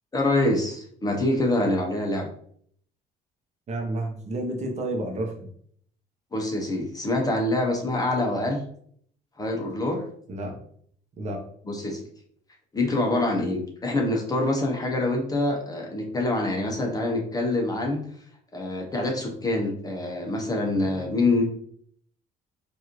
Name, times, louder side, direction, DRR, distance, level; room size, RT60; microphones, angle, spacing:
voice 1, 0.1-2.3 6.3-8.6 9.4-10.0 11.7-12.0 12.7-18.0 18.5-21.4, left 2 dB, 20° left, 1 dB, 0.9 m, -25 dB
voice 2, 3.7-5.5 10.3-10.6 11.2-11.4, right 1 dB, 40° right, 2 dB, 1.0 m, -30 dB
4.7 x 2.7 x 3.1 m, 0.62 s
cardioid pair, 110°, 17 cm